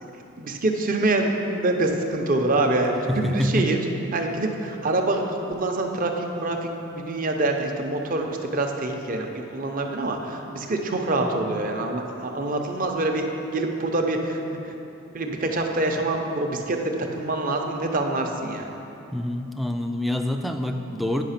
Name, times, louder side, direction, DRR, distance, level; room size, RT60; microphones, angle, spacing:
voice 1, 0.4-3.8 4.1-13.3 13.5-14.7 15.1-18.7, right 2 dB, 40° right, 3 dB, 0.7 m, -25 dB
voice 2, 3.1-3.7 19.1-21.2, left 1 dB, ahead, 4 dB, 0.3 m, -26 dB
9.0 x 5.7 x 5.7 m, 2.9 s
head